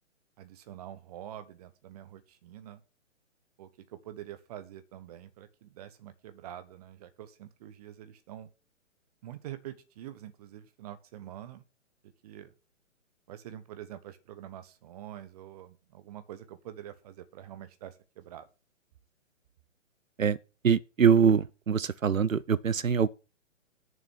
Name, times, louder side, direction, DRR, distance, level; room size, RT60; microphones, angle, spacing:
voice 1, 0.4-2.8 3.6-8.5 9.2-11.6 12.0-12.5 13.3-18.5, right 11 dB, 30° right, 1.2 m, -46 dB
voice 2, 20.6-23.1, right 7 dB, 85° right, 0.6 m, -24 dB
8.9 x 7.0 x 6.1 m
figure-of-eight pair, 130°, 39 cm